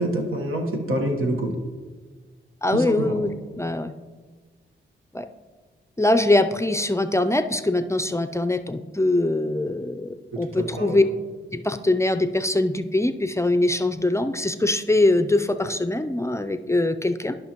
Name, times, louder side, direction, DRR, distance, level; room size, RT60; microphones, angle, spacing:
voice 1, 0.0-1.5 2.7-3.2 10.6-11.0, right 1 dB, 85° right, 2 dB, 1.3 m, -26 dB
voice 2, 2.6-3.9 5.1-5.3 6.0-11.0 11.5-17.4, left 2 dB, 15° left, 10 dB, 0.4 m, -22 dB
13.0 x 5.6 x 3.0 m, 1.4 s
cardioid pair, 55°, 21 cm